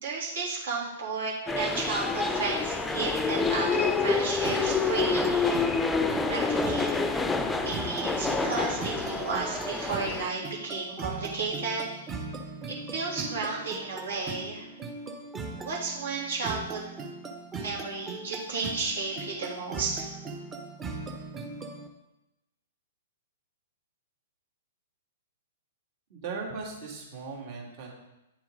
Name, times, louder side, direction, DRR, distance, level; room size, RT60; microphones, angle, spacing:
voice 1, 0.0-5.6 6.3-6.9 7.6-12.0 12.7-14.7 15.6-16.8 17.5-20.1, right 4 dB, 60° right, -5 dB, 3.2 m, -33 dB
sound 1, 1.5-10.3, left 4 dB, 10° left, 0.7 m, -28 dB
sound 2, 4.4-21.9, right 3 dB, 20° right, 1.1 m, -40 dB
voice 2, 26.1-27.9, right 4 dB, 45° right, -1 dB, 2.8 m, -38 dB
9.4 x 7.4 x 3.9 m, 0.94 s
figure-of-eight pair, 110°, 0 cm